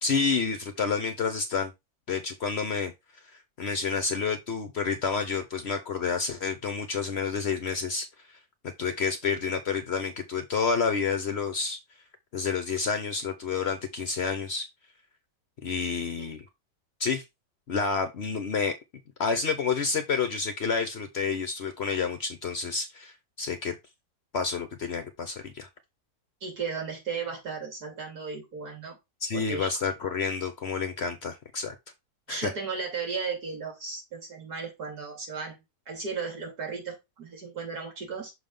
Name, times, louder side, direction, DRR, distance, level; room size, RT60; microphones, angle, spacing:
voice 1, 0.0-1.7 2.1-2.9 3.6-8.1 8.6-11.8 12.3-14.7 15.6-16.4 17.0-17.2 17.7-18.7 19.2-23.8 24.3-25.7 29.2-31.7 32.3-32.5, left 5 dB, 55° left, 0.8 m, -29 dB
voice 2, 26.4-29.0 29.3-29.7 32.3-38.3, right 5 dB, 75° right, 2.9 m, -35 dB
6.2 x 3.6 x 5.3 m
omnidirectional pair, 1.7 m